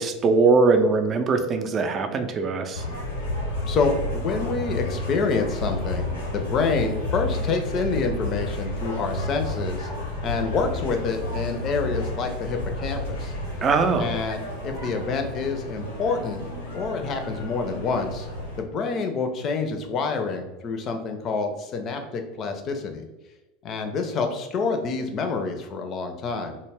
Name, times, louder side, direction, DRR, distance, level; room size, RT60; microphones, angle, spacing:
voice 1, 0.0-2.8 13.6-14.1, right 4 dB, 35° right, 6 dB, 0.4 m, -21 dB
sound 1, 2.7-18.6, left 1 dB, 90° left, 0.7 m, -31 dB
voice 2, 3.7-9.9 10.2-13.3 14.0-16.4 16.7-18.3 18.6-23.1 23.6-26.6, left 4 dB, 45° left, 5 dB, 0.4 m, -27 dB
2.2 x 2.1 x 3.3 m, 1.1 s
hypercardioid pair, 85°, 0 cm